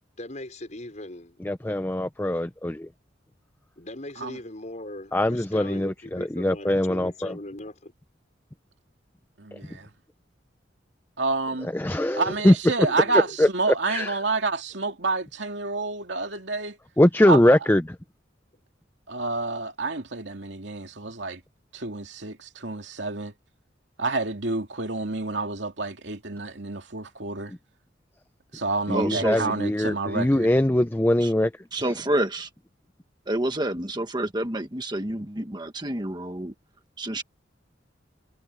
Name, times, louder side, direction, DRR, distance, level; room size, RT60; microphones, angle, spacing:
voice 1, 0.2-1.4 3.8-7.9 12.9-13.4, left 1 dB, 40° left, 5.5 m, -39 dB
voice 2, 1.4-2.9 5.1-7.4 11.7-12.5 13.4-13.5 13.9-14.2 17.0-17.8 28.9-31.5, left 1 dB, 10° left, 0.6 m, -22 dB
voice 3, 11.2-11.7 12.1-16.8 17.2-17.6 19.1-21.4 21.7-23.3 24.0-27.5 28.5-30.5, right 3 dB, 70° right, 2.7 m, -29 dB
voice 4, 28.9-29.5 31.2-31.3 31.7-32.5 33.3-36.5 37.0-37.2, right 1 dB, 25° right, 1.5 m, -28 dB
head